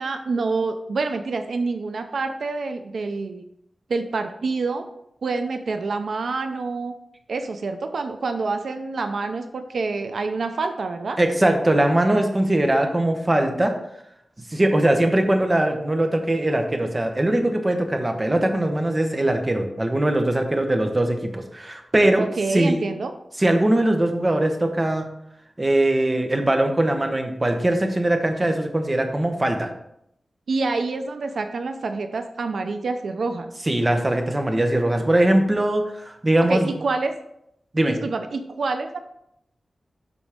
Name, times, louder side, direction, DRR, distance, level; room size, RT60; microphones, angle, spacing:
voice 1, 0.0-3.4 3.9-4.8 5.2-6.9 7.3-11.2 22.2-23.1 30.5-33.5 36.5-37.1 37.9-39.0, right 3 dB, 80° right, 7 dB, 0.6 m, -27 dB
voice 2, 11.2-13.7 14.5-22.2 22.5-22.8 23.4-25.0 25.6-29.7 33.7-36.7 37.7-38.0, right 1 dB, 25° right, 5 dB, 1.1 m, -21 dB
12.0 x 4.1 x 3.6 m, 0.77 s
wide cardioid pair, 100°, 0 cm